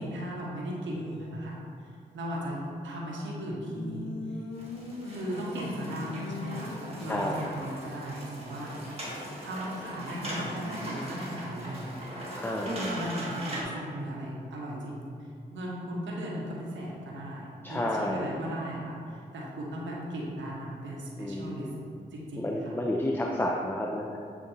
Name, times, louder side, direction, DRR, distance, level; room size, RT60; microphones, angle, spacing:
voice 1, 0.0-1.6 2.1-4.1 5.1-8.7 9.4-21.7 22.1-22.7, equal, 85° right, -4 dB, 0.7 m, -37 dB
sound 1, 0.9-1.5 3.7-7.5, left 3 dB, 70° left, 0.5 m, -40 dB
sound 2, 4.5-13.6, right 1 dB, 30° right, 1.2 m, -40 dB
voice 2, 7.1-7.4 12.4-12.7 17.6-18.3 21.2-21.7 22.4-24.2, left 1 dB, 10° left, -1 dB, 0.4 m, -30 dB
6.7 x 2.5 x 2.6 m, 2.4 s
supercardioid pair, 40°, 19 cm